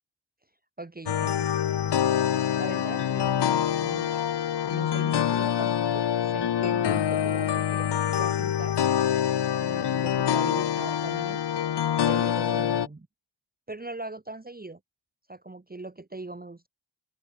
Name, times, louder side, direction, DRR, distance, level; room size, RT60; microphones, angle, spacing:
voice 1, 0.8-2.0 2.6-4.2 4.7-8.8 9.6-11.4 12.1-13.1 13.7-14.8 15.3-16.7, right 2 dB, 20° right, 1.2 m, -40 dB
sound 1, 1.1-12.9, left 9 dB, 60° left, 0.9 m, -25 dB
open air
cardioid pair, 45°, 47 cm